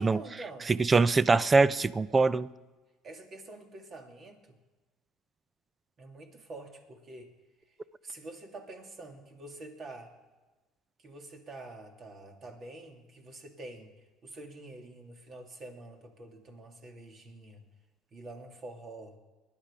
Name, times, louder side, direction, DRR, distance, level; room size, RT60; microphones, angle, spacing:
voice 1, 0.0-0.7 3.0-4.6 6.0-7.3 8.0-10.1 11.0-17.6 18.1-19.1, right 2 dB, 45° right, 3 dB, 2.8 m, -46 dB
voice 2, 0.7-2.5, right 3 dB, 25° right, 18 dB, 0.6 m, -23 dB
20.0 x 10.5 x 5.2 m, 1.2 s
supercardioid pair, 80°, 0 cm